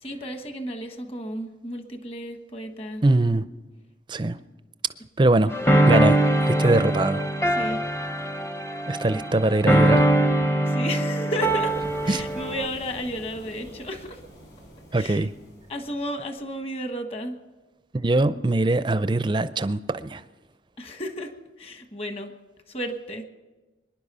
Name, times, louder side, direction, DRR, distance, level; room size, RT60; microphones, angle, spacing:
voice 1, 0.0-3.0 7.5-7.8 9.1-9.2 10.6-11.7 12.0-14.2 14.9-15.3 15.7-17.4 20.8-21.3 21.6-22.3 22.7-23.2, equal, 30° left, 6 dB, 1.3 m, -33 dB
voice 2, 3.0-3.5 4.1-4.4 5.2-5.5 5.9-6.2 6.5-7.2 8.9-10.1 12.1-12.2 14.9-15.3 17.9-20.2, right 2 dB, 25° right, 13 dB, 0.5 m, -22 dB
sound 1, 5.5-12.7, right 1 dB, 15° left, 0.7 m, -22 dB
sound 2, 11.4-16.3, equal, 75° left, 7.0 m, -45 dB
24.0 x 10.5 x 5.5 m, 1.2 s
head